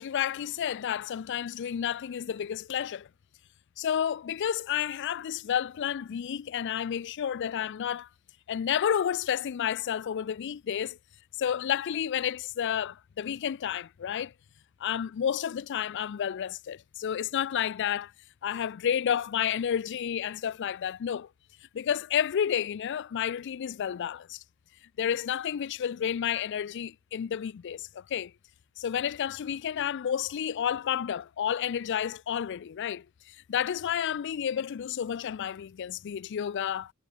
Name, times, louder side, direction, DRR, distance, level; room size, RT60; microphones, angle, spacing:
voice 1, 0.0-3.1 3.8-8.1 8.5-11.0 11.4-14.3 14.8-18.1 18.4-21.3 21.7-24.4 25.0-28.3 28.8-36.9, left 9 dB, 55° left, 0.3 m, -31 dB
head